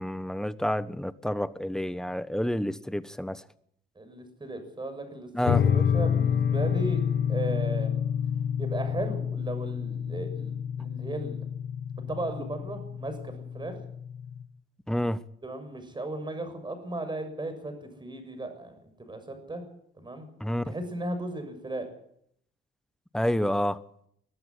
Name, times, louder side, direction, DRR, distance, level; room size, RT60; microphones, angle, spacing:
voice 1, 0.0-3.4 5.3-5.6 14.9-15.2 20.4-20.7 23.1-23.8, equal, 5° left, 1.1 m, -29 dB
voice 2, 3.9-7.0 7.3-8.0 8.6-11.4 12.1-13.8 15.4-19.6 19.9-20.3 20.6-21.9, right 2 dB, 25° right, 6.8 m, -36 dB
sound 1, 5.4-14.4, left 8 dB, 55° left, 1.6 m, -28 dB
22.5 x 12.5 x 9.8 m
cardioid pair, 90°, 20 cm